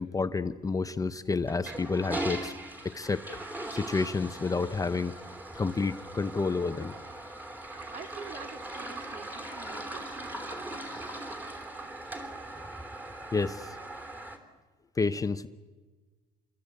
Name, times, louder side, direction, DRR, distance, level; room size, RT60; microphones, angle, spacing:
voice 1, 0.0-2.5 2.8-5.2 5.6-6.9 13.3-13.8 15.0-15.5, left 4 dB, 20° left, 11 dB, 0.8 m, -30 dB
Toilet flush, 1.4-14.4, right 1 dB, 10° right, 3.2 m, -40 dB
voice 2, 7.7-11.1, right 5 dB, 50° right, 6 dB, 3.0 m, -48 dB
27.5 x 22.0 x 8.5 m, 1.3 s
cardioid pair, 110°, 17 cm